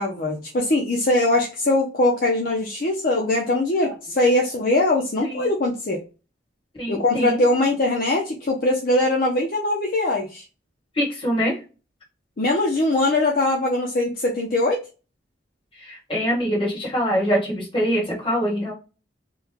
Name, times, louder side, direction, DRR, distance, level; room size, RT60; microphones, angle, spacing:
voice 1, 0.0-6.0 6.9-10.4 12.4-14.8, left 2 dB, 50° left, -1 dB, 0.6 m, -21 dB
voice 2, 6.8-7.4 11.0-11.6 15.8-18.7, equal, 30° left, -3 dB, 1.3 m, -24 dB
3.1 x 2.2 x 3.5 m, 0.33 s
head